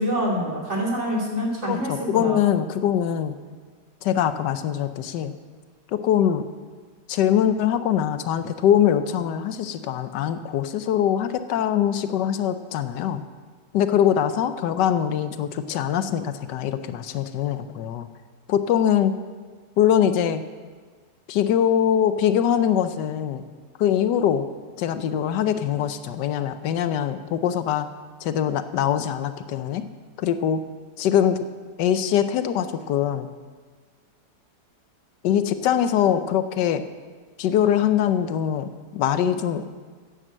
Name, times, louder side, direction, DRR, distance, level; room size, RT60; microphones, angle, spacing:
voice 1, 0.0-1.9 2.2-2.4, equal, 40° right, -3 dB, 3.1 m, -25 dB
voice 2, 1.6-3.3 4.0-5.4 5.9-6.4 7.1-13.2 13.7-18.1 18.5-19.1 19.8-20.4 21.3-23.4 23.8-24.4 24.8-27.9 28.2-29.9 30.2-30.6 31.0-31.4 31.8-33.3 35.2-36.8 37.4-39.6, left 9 dB, 85° left, 11 dB, 1.3 m, -22 dB
9.8 x 9.3 x 7.5 m, 1.5 s
omnidirectional pair, 1.8 m